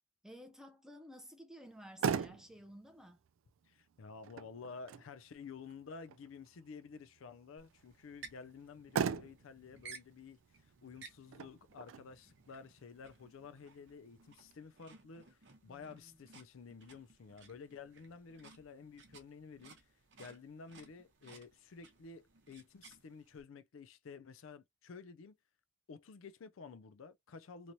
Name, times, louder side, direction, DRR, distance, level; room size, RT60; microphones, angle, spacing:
voice 1, 0.2-3.2 15.7-16.2, equal, 5° right, 0.5 m, -54 dB
Motor vehicle (road), 1.6-14.6, right 6 dB, 85° right, 0.4 m, -43 dB
voice 2, 3.7-19.8 20.2-25.4 25.9-27.7, left 5 dB, 85° left, 0.4 m, -52 dB
sound 1, 7.6-23.4, right 5 dB, 60° right, 0.8 m, -59 dB
3.0 x 2.9 x 2.6 m
head